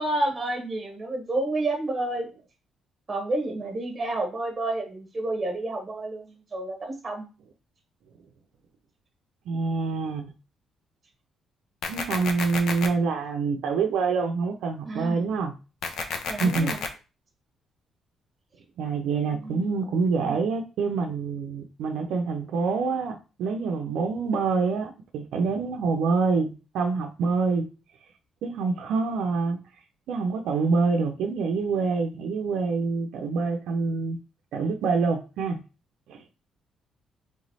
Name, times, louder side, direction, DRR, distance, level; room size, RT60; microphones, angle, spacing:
voice 1, 0.0-2.3 3.1-7.3 14.9-15.2 16.3-16.8 19.2-19.7, right 2 dB, 25° right, 3 dB, 1.0 m, -30 dB
voice 2, 9.5-10.3 11.9-15.5 16.4-16.7 18.8-27.6 28.4-29.6 30.1-34.2 34.5-35.6 36.1-36.2, right 4 dB, 85° right, 3 dB, 0.5 m, -26 dB
sound 1, 11.8-12.9 15.8-16.9, left 5 dB, 75° left, 0.7 m, -31 dB
3.5 x 3.1 x 4.0 m, 0.32 s
cardioid pair, 90°, 0 cm